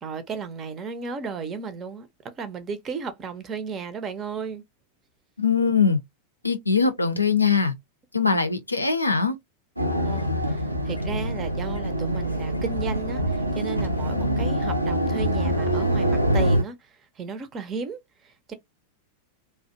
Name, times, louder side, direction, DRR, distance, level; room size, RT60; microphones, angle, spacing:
voice 1, 0.0-2.1 2.4-4.6 10.0-18.5, right 5 dB, 25° right, 0.5 m, -34 dB
voice 2, 5.4-6.0 6.4-7.7 8.1-9.4, left 5 dB, 85° left, 0.4 m, -21 dB
sound 1, 9.8-16.6, equal, 85° right, 0.4 m, -25 dB
2.5 x 2.1 x 2.5 m
figure-of-eight pair, 90°, 0 cm